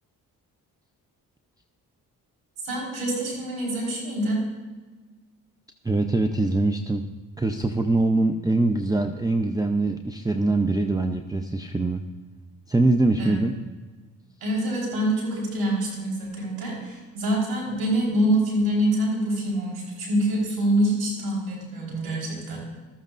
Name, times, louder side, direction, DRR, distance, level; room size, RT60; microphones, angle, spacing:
voice 1, 2.6-4.4 13.2-13.4 14.4-22.6, right 1 dB, 90° right, -2 dB, 4.3 m, -25 dB
voice 2, 5.8-7.0 7.4-12.0 12.7-13.5, right 2 dB, 10° right, 6 dB, 0.6 m, -23 dB
14.5 x 13.5 x 2.5 m, 1.3 s
cardioid pair, 75°, 36 cm